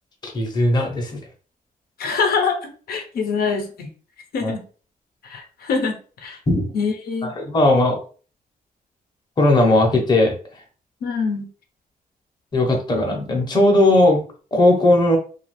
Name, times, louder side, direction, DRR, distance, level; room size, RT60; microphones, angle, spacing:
voice 1, 0.2-1.2 4.4-4.5 6.5-6.7 7.4-8.0 9.4-10.3 12.5-14.2 14.5-15.2, left 1 dB, 30° left, 1 dB, 0.7 m, -17 dB
voice 2, 2.0-3.9 4.3-4.6 5.2-5.9 6.2-6.4 6.7-7.3 11.0-11.5, left 5 dB, 90° left, 4 dB, 0.7 m, -24 dB
2.6 x 2.3 x 3.1 m, 0.38 s
wide cardioid pair, 165°, 15 cm